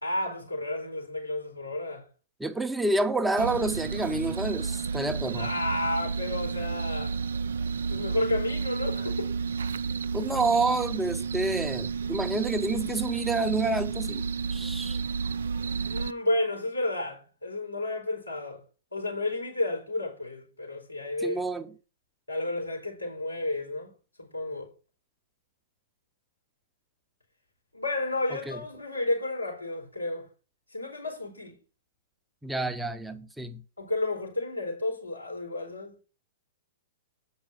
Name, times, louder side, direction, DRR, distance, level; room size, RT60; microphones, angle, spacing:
voice 1, 0.0-2.1 5.3-7.2 7.9-9.3 15.9-18.6 18.9-21.4 22.3-23.9 24.2-24.7 27.7-30.3 30.7-31.6 33.8-35.9, left 2 dB, 90° left, 4.4 m, -31 dB
voice 2, 2.4-5.5 10.1-15.0 21.2-21.7 28.3-28.6 32.4-33.6, right 2 dB, 5° right, 0.7 m, -29 dB
sound 1, 3.4-16.1, right 5 dB, 65° right, 0.4 m, -31 dB
8.7 x 5.7 x 6.2 m
figure-of-eight pair, 110°, 0 cm